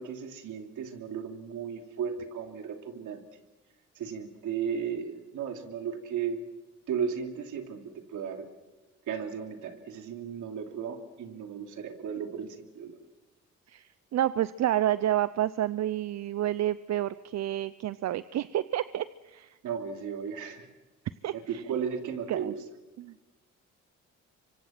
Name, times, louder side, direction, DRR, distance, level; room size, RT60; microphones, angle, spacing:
voice 1, 0.0-3.2 4.0-6.4 6.9-8.5 9.1-13.0 19.6-20.7 21.3-22.6, right 7 dB, 75° right, 4 dB, 3.0 m, -35 dB
voice 2, 13.7-19.6 21.2-21.6 22.3-22.5 23.0-23.1, right 12 dB, 60° right, 16 dB, 0.6 m, -29 dB
26.0 x 24.5 x 6.0 m, 1.3 s
cardioid pair, 90°, 30 cm